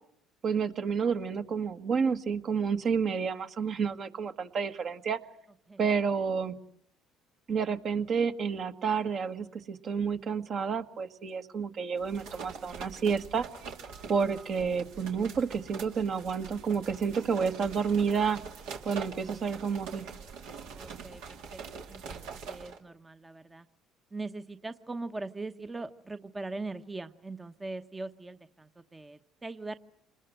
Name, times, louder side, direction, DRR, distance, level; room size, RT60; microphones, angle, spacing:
voice 1, 0.4-5.2 5.8-6.5 7.5-13.5 14.1-18.4 18.8-20.1, right 6 dB, 50° right, 7 dB, 1.7 m, -30 dB
sound 1, 12.0-22.8, right 6 dB, 75° right, 2.5 m, -44 dB
voice 2, 20.7-21.6 21.9-23.7 24.1-29.8, right 3 dB, 20° right, 9 dB, 1.0 m, -41 dB
27.0 x 20.5 x 7.8 m, 0.71 s
supercardioid pair, 75°, 0 cm